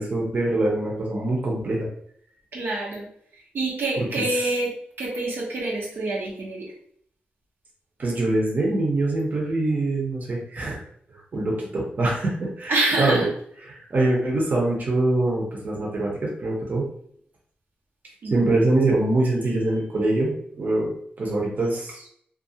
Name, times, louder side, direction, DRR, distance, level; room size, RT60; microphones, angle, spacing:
voice 1, 0.0-1.9 4.0-4.1 8.0-10.8 11.3-12.7 13.0-13.2 13.7-16.9 18.3-22.1, right 2 dB, 50° right, -3 dB, 0.8 m, -24 dB
voice 2, 2.5-3.1 3.3-4.7 5.0-6.7 12.7-13.3 18.2-18.7, right 2 dB, 75° right, -4 dB, 0.8 m, -27 dB
2.4 x 2.3 x 2.7 m, 0.64 s
cardioid pair, 85°, 4 cm